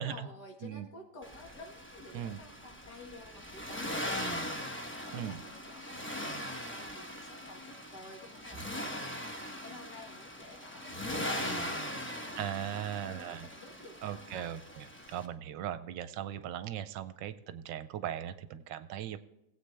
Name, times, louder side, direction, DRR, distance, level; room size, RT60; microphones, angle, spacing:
voice 1, 0.0-14.5, left 2 dB, 60° left, 1 dB, 2.3 m, -51 dB
Accelerating revving vroom, 1.2-15.3, equal, 20° left, 0.3 m, -40 dB
voice 2, 12.4-13.5 14.0-19.2, right 10 dB, 80° right, 12 dB, 1.3 m, -38 dB
18.0 x 8.2 x 3.3 m, 0.88 s
omnidirectional pair, 2.0 m